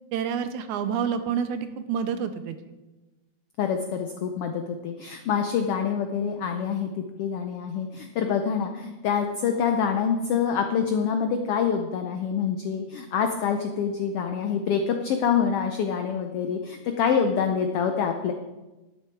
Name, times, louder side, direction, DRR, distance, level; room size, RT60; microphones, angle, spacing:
voice 1, 0.1-2.6, right 7 dB, 80° right, 10 dB, 2.1 m, -28 dB
voice 2, 3.6-18.3, left 7 dB, 85° left, 5 dB, 1.3 m, -26 dB
12.5 x 9.9 x 4.6 m, 1.1 s
omnidirectional pair, 3.6 m